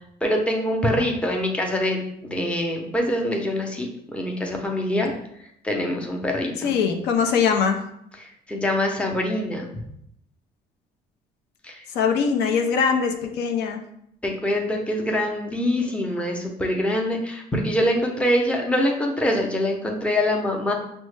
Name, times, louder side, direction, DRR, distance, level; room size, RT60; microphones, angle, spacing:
voice 1, 0.2-5.1 5.6-6.7 8.2-9.7 11.6-11.8 14.2-20.7, left 1 dB, 5° left, 1 dB, 0.6 m, -24 dB
voice 2, 6.6-7.8 11.9-13.8, left 6 dB, 80° left, 4 dB, 0.6 m, -22 dB
5.3 x 2.1 x 3.2 m, 0.74 s
cardioid pair, 110°, 17 cm